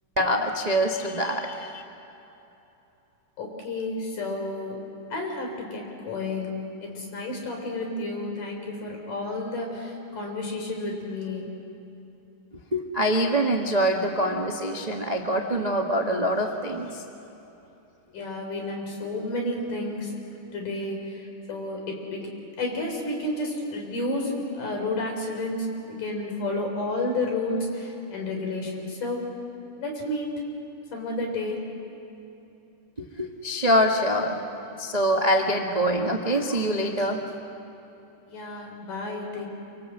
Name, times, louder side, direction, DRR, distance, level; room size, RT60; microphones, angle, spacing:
voice 1, 0.2-1.8 12.7-17.0 33.0-34.4 34.8-37.2, equal, 40° right, 1 dB, 0.5 m, -24 dB
voice 2, 3.4-4.8 5.1-11.5 18.1-20.2 20.5-22.3 22.6-29.3 29.8-30.3 30.9-31.6 38.3-39.5, left 2 dB, 85° left, 2 dB, 5.5 m, -31 dB
26.5 x 25.5 x 7.9 m, 2.9 s
omnidirectional pair, 3.6 m